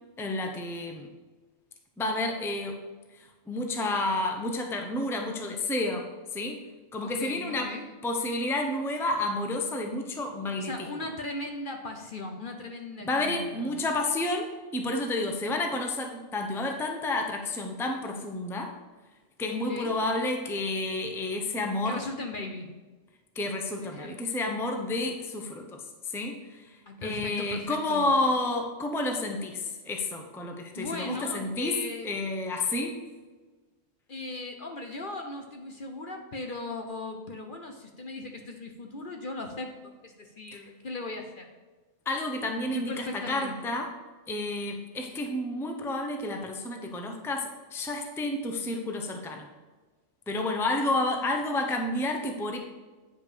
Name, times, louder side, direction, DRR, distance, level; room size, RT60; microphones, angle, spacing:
voice 1, 0.2-1.1 2.0-2.8 3.1-6.1 6.3-6.6 6.9-7.8 8.0-10.7 13.0-18.7 19.4-22.0 23.3-33.0 40.5-40.6 42.0-43.9 44.3-49.5 50.3-52.6, left 2 dB, ahead, 3 dB, 0.7 m, -30 dB
voice 2, 7.0-7.9 10.6-13.8 19.7-19.9 21.9-22.7 23.8-24.2 26.9-28.0 30.8-32.1 34.1-41.5 42.7-43.7, left 2 dB, 45° left, 3 dB, 0.9 m, -38 dB
9.3 x 5.2 x 5.0 m, 1.3 s
omnidirectional pair, 1.3 m